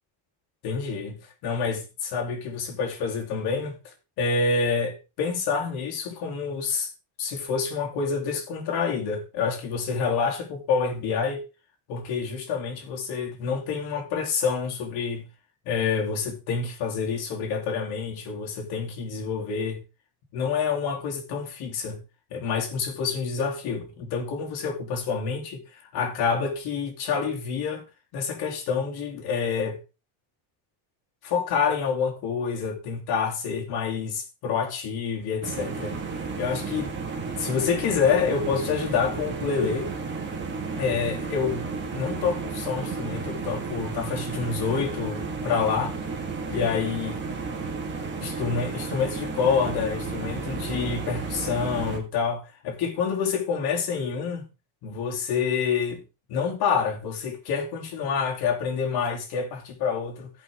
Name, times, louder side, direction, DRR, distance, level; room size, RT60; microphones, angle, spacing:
voice 1, 0.6-1.2 1.4-3.7 4.2-6.9 7.2-11.4 11.9-15.2 15.6-19.8 20.3-22.0 22.3-25.6 25.9-27.8 28.1-29.8 31.2-36.0 36.4-36.9 37.4-39.9 40.8-46.0 46.5-47.2 48.2-54.5 54.8-56.0 56.3-60.3, left 5 dB, 60° left, 3.1 m, -27 dB
sound 1, 35.4-52.0, right 4 dB, 25° right, 1.9 m, -33 dB
16.5 x 5.7 x 3.6 m
cardioid pair, 165°, 43 cm